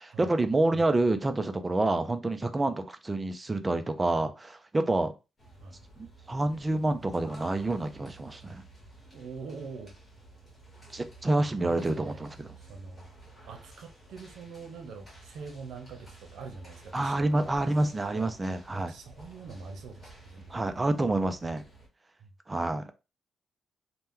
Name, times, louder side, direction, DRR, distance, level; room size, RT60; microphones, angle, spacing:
voice 1, 0.0-5.1 6.0-8.6 10.9-12.5 16.9-18.9 20.5-21.6 22.5-22.8, right 2 dB, 15° right, 0.3 m, -28 dB
sound 1, 5.4-21.9, right 2 dB, 20° left, 1.1 m, -52 dB
voice 2, 9.1-9.9 11.3-12.2 12.6-13.1 13.4-17.5 18.1-18.3 18.7-20.6 22.2-22.3, right 4 dB, 75° right, 0.7 m, -44 dB
2.9 x 2.1 x 3.5 m
cardioid pair, 170°, 0 cm